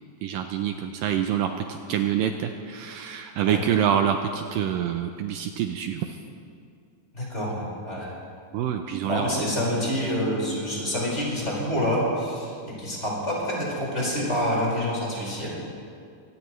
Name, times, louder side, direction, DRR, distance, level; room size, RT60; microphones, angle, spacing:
voice 1, 0.2-6.0 8.5-9.3, right 9 dB, 85° right, 5 dB, 2.0 m, -26 dB
voice 2, 7.1-8.1 9.0-12.5 12.8-15.6, equal, 15° left, -5 dB, 5.1 m, -27 dB
24.5 x 18.5 x 3.2 m, 2.3 s
omnidirectional pair, 4.7 m